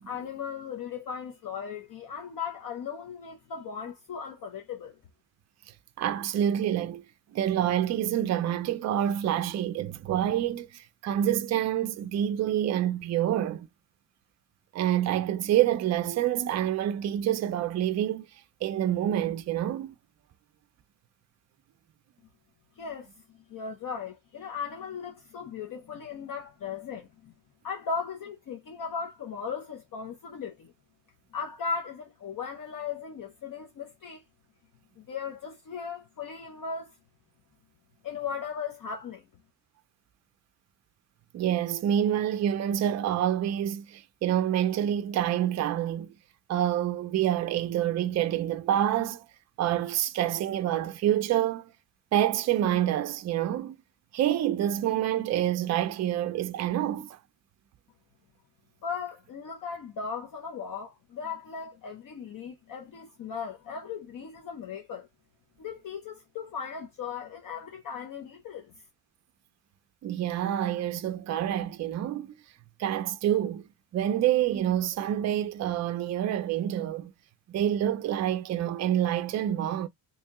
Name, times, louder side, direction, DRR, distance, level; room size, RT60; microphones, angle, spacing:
voice 1, 0.1-5.0 22.8-23.1 23.5-27.3 27.6-30.7 31.3-34.2 35.0-36.9 38.0-39.2 58.8-65.1 65.6-68.7, left 6 dB, 50° left, 0.8 m, -37 dB
voice 2, 6.0-7.0 7.3-13.7 14.7-18.3 18.6-19.9 41.3-46.1 46.5-49.2 49.6-51.7 52.1-53.8 54.1-57.2 70.0-72.3 72.8-77.1 77.5-79.9, right 11 dB, 40° right, 0.4 m, -27 dB
3.0 x 2.8 x 3.5 m
cardioid pair, 145°, 43 cm